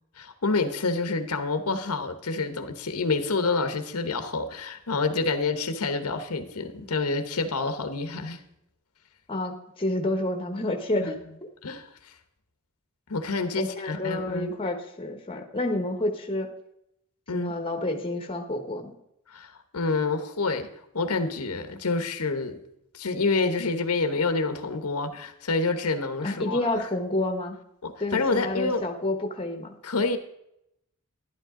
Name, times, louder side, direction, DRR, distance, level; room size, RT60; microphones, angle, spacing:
voice 1, 0.2-8.4 11.0-11.1 11.6-12.1 13.1-14.5 17.3-17.5 19.3-20.7 20.9-22.6 22.9-26.9 27.8-28.8 29.8-30.2, left 3 dB, 80° left, 8 dB, 1.1 m, -28 dB
voice 2, 9.3-11.2 13.6-16.5 17.3-18.9 26.2-27.6 28.0-29.7, left 1 dB, 25° left, 5 dB, 1.2 m, -29 dB
12.0 x 11.0 x 3.7 m, 0.80 s
head